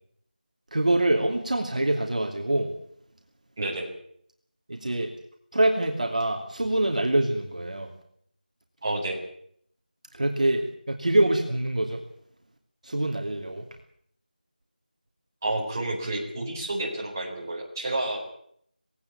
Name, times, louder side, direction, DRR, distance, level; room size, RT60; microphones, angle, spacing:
voice 1, 0.7-2.7 4.7-5.1 5.5-7.9 10.1-12.0 12.8-13.6, right 1 dB, 50° right, 2 dB, 2.8 m, -25 dB
voice 2, 3.6-3.9 8.8-9.2 15.4-18.2, right 2 dB, 20° right, -3 dB, 4.3 m, -30 dB
19.5 x 17.5 x 8.6 m, 0.66 s
figure-of-eight pair, 175°, 5 cm